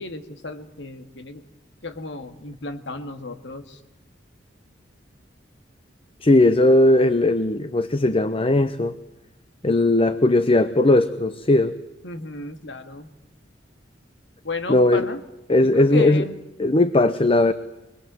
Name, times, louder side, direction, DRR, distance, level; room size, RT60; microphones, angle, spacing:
voice 1, 0.0-1.4 1.8-3.8 12.0-13.1 14.4-15.2 15.6-16.4, left 3 dB, 70° left, 8 dB, 2.1 m, -33 dB
voice 2, 6.2-8.9 9.6-11.7 14.7-15.1 15.5-16.2 16.6-17.5, left 2 dB, 30° left, 12 dB, 0.8 m, -18 dB
25.0 x 20.0 x 7.8 m, 1.0 s
head